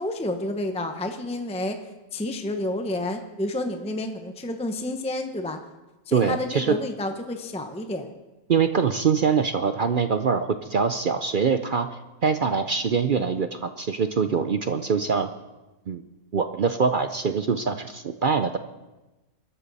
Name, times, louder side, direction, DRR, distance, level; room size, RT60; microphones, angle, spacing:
voice 1, 0.0-1.8 2.1-5.6 6.1-8.1, left 1 dB, 5° left, 5 dB, 0.8 m, -30 dB
voice 2, 6.1-6.7 8.5-11.9 12.2-15.3 15.9-16.0 16.3-18.6, right 5 dB, 60° right, 9 dB, 0.5 m, -23 dB
23.5 x 13.0 x 4.2 m, 1.1 s
omnidirectional pair, 1.6 m